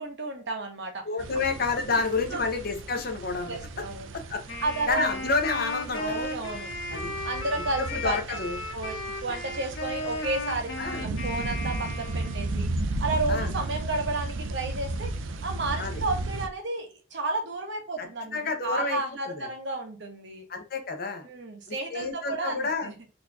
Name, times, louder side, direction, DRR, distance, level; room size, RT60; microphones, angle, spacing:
voice 1, 0.0-1.1 1.4-1.5 2.3-2.4 3.5-4.1 4.6-5.1 6.0-6.7 7.2-8.2 8.7-12.7 13.0-15.1 15.4-20.4 21.2-22.9, right 2 dB, 60° right, 3 dB, 0.9 m, -32 dB
voice 2, 1.0-3.6 4.3-4.4 4.9-6.3 6.9-7.1 7.8-8.6 10.8-11.1 13.3-13.5 15.8-16.0 18.0-19.5 20.5-21.3 21.7-22.9, left 4 dB, 50° left, 4 dB, 0.7 m, -29 dB
sound 1, 1.2-16.5, right 2 dB, 75° right, 0.4 m, -35 dB
Wind instrument woodwind instrument, 4.5-12.6, left 2 dB, 85° left, 1.3 m, -35 dB
4.1 x 2.8 x 2.3 m, 0.36 s
head